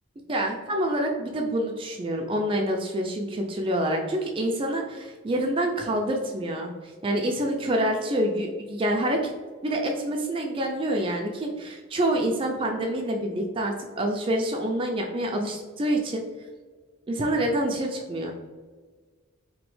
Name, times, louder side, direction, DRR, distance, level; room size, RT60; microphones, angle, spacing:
voice 1, 0.3-9.3 9.6-16.2 17.1-18.3, right 1 dB, 25° right, 1 dB, 0.3 m, -27 dB
4.2 x 3.0 x 3.1 m, 1.4 s
head